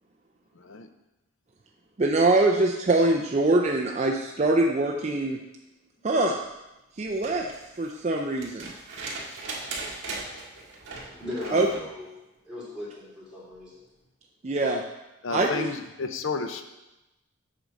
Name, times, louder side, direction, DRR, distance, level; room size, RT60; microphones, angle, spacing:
voice 1, 2.0-5.4 6.0-6.4 7.0-7.5 7.8-8.7 11.5-11.7 14.4-14.8 15.3-15.7, right 2 dB, 30° right, 1 dB, 0.4 m, -23 dB
sound 1, 7.0-11.9 13.5-13.6, right 3 dB, 55° right, 1.9 m, -39 dB
voice 2, 11.0-12.1 12.4-13.8, left 1 dB, 5° right, -9 dB, 3.0 m, -38 dB
voice 3, 15.2-16.7, left 4 dB, 60° left, 8 dB, 0.6 m, -32 dB
7.9 x 4.0 x 6.3 m, 0.97 s
head